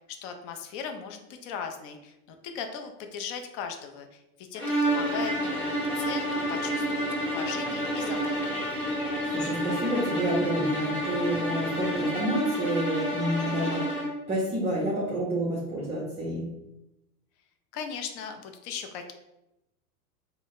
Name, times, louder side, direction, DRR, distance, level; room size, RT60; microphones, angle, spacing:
voice 1, 0.2-8.6 17.7-19.1, left 6 dB, 40° left, 6 dB, 0.4 m, -38 dB
sound 1, 4.5-14.2, equal, 25° left, 1.5 m, -29 dB
sound 2, 4.9-12.0, left 1 dB, 75° left, 1.0 m, -45 dB
voice 2, 9.3-13.9 14.3-16.5, right 1 dB, 15° right, -4 dB, 0.6 m, -29 dB
3.8 x 2.1 x 2.4 m, 0.92 s
hypercardioid pair, 110°, 45 cm